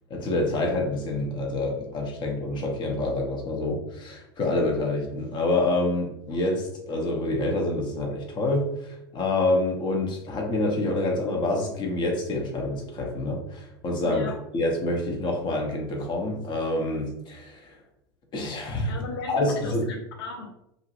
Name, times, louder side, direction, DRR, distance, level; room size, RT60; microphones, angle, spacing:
voice 1, 0.1-14.2 14.5-17.7 18.3-18.9 19.3-19.8, left 2 dB, 35° left, 1 dB, 0.9 m, -27 dB
voice 2, 14.0-14.4 18.9-20.5, left 3 dB, 75° left, 2 dB, 0.5 m, -35 dB
2.7 x 2.6 x 2.9 m, 0.83 s
hypercardioid pair, 85°, 13 cm